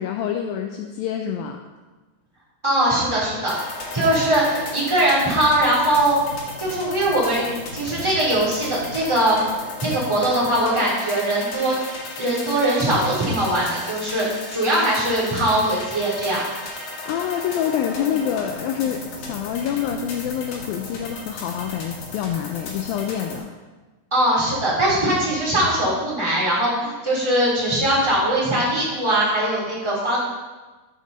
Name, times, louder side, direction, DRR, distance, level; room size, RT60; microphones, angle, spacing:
voice 1, 0.0-1.6 17.1-23.5, left 9 dB, 85° left, 4 dB, 2.1 m, -26 dB
voice 2, 2.6-3.5 3.9-6.2 6.6-9.4 9.8-11.8 12.2-16.4 24.1-30.2, right 1 dB, 10° right, -6 dB, 2.7 m, -21 dB
sound 1, 3.5-23.4, left 2 dB, 55° left, 3.0 m, -35 dB
13.5 x 7.3 x 4.1 m, 1.2 s
omnidirectional pair, 4.7 m